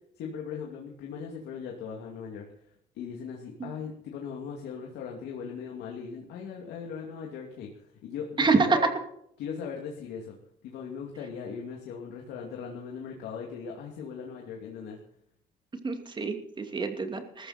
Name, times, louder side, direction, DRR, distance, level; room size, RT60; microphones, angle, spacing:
voice 1, 0.2-8.9 9.4-10.3 10.6-15.0, left 6 dB, 80° left, 0 dB, 2.7 m, -39 dB
voice 2, 8.4-8.8 15.8-17.5, right 4 dB, 25° right, 6 dB, 2.6 m, -26 dB
19.5 x 14.5 x 4.4 m, 0.72 s
cardioid pair, 110°, 17 cm